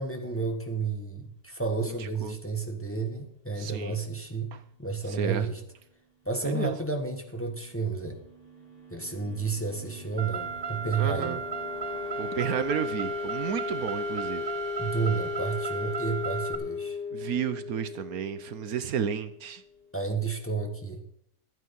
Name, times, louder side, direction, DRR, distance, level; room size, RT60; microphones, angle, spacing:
voice 1, 0.0-4.5 4.8-5.6 6.2-8.2 8.9-11.4 14.8-17.0 19.9-21.0, right 4 dB, 10° left, 3 dB, 1.6 m, -31 dB
voice 2, 3.6-4.0 4.5-4.6 5.1-5.5 6.4-6.8 11.0-11.4 12.2-14.4 17.1-19.6, right 8 dB, 70° right, 11 dB, 1.2 m, -32 dB
sound 1, 7.3-19.9, left 5 dB, 35° left, 2.5 m, -38 dB
Car, 10.2-16.6, right 5 dB, 45° right, 0.8 m, -35 dB
12.5 x 9.3 x 5.4 m, 0.70 s
omnidirectional pair, 1.6 m